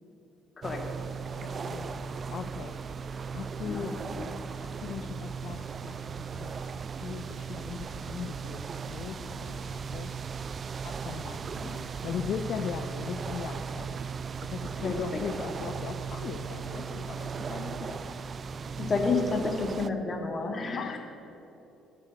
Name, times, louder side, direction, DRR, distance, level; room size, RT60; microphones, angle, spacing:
sound 1, 0.6-19.9, right 6 dB, 40° right, 0.4 m, -37 dB
voice 1, 1.4-2.8 3.0-4.0 4.5-10.1 10.8-14.0 14.4-18.0 20.8-21.0, left 7 dB, 55° left, 8 dB, 0.5 m, -39 dB
voice 2, 3.6-4.4 11.6-11.7 14.8-15.2 18.8-21.0, left 4 dB, 35° left, 3 dB, 1.9 m, -30 dB
9.8 x 7.9 x 8.8 m, 2.9 s
figure-of-eight pair, 50°, 0 cm